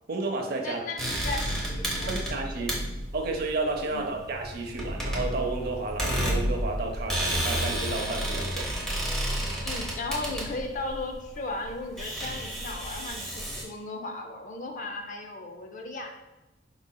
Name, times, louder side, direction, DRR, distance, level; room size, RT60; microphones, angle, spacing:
voice 1, 0.1-0.8 2.1-2.7 3.1-8.7, right 3 dB, 55° right, 2 dB, 0.6 m, -31 dB
voice 2, 0.6-2.1 2.5-2.7 3.9-4.2 9.6-16.2, left 2 dB, 45° left, 4 dB, 0.5 m, -36 dB
sound 1, 1.0-13.6, equal, ahead, 0.8 m, -31 dB
4.7 x 4.0 x 2.3 m, 1.0 s
head